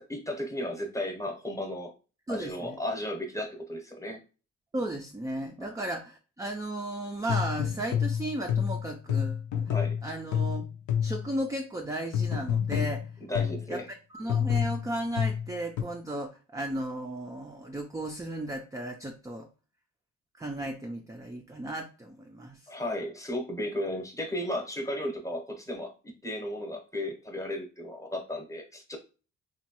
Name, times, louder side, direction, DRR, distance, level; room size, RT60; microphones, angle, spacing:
voice 1, 0.1-1.9 2.3-4.2 5.6-5.7 9.7-10.0 13.3-13.9 22.7-25.9 26.2-29.0, left 1 dB, 10° left, 3 dB, 0.8 m, -34 dB
voice 2, 2.3-2.8 4.7-9.6 10.0-10.6 11.0-13.1 13.7-13.8 14.1-19.5 20.4-22.7, right 1 dB, 10° right, 3 dB, 0.4 m, -35 dB
sound 1, 7.3-11.3 12.1-13.7 14.3-15.8, left 8 dB, 75° left, 0.6 m, -29 dB
3.0 x 2.2 x 2.9 m, 0.34 s
cardioid pair, 90°, 30 cm